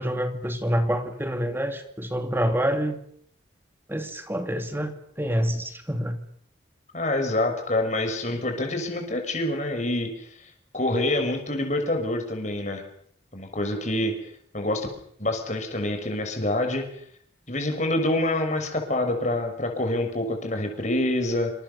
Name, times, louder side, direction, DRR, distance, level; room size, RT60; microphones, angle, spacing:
voice 1, 0.0-3.0 3.9-6.2, equal, 10° right, 7 dB, 2.6 m, -27 dB
voice 2, 6.9-10.3 10.7-12.8 13.3-14.1 14.5-14.9 15.2-16.8 17.5-21.5, left 1 dB, 40° left, 4 dB, 6.0 m, -26 dB
28.0 x 26.0 x 6.9 m, 0.65 s
head